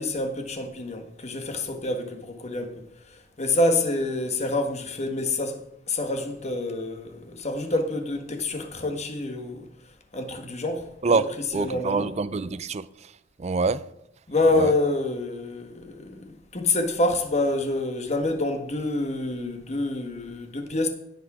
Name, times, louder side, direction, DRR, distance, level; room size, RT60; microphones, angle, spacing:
voice 1, 0.0-2.7 3.4-5.6 5.9-9.6 10.1-11.2 11.5-12.1 14.3-20.9, left 2 dB, 35° left, 1.4 m, -27 dB
voice 2, 11.5-12.8 13.4-13.8 14.5-14.7, right 4 dB, 35° right, 0.5 m, -25 dB
16.5 x 6.0 x 4.9 m
head